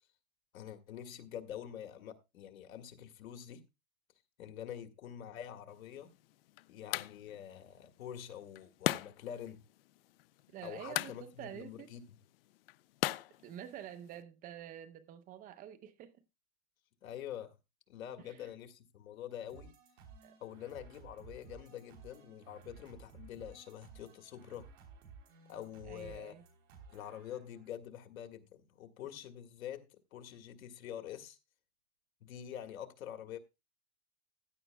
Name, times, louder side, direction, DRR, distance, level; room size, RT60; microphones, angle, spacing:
voice 1, 0.5-3.6 4.4-6.1 6.7-9.6 10.6-12.0 17.0-17.6 17.9-19.7 20.4-24.7 25.5-26.4 26.9-31.4 32.2-33.4, left 10 dB, 80° left, 1.9 m, -46 dB
sound 1, 5.7-14.2, left 17 dB, 45° left, 0.5 m, -41 dB
voice 2, 10.5-12.0 13.4-16.2 18.2-18.5 20.2-20.3 25.8-26.4, right 10 dB, 20° right, 0.7 m, -48 dB
sound 2, 19.5-27.7, right 5 dB, 65° right, 3.4 m, -56 dB
15.5 x 10.0 x 2.3 m
supercardioid pair, 150°, 41 cm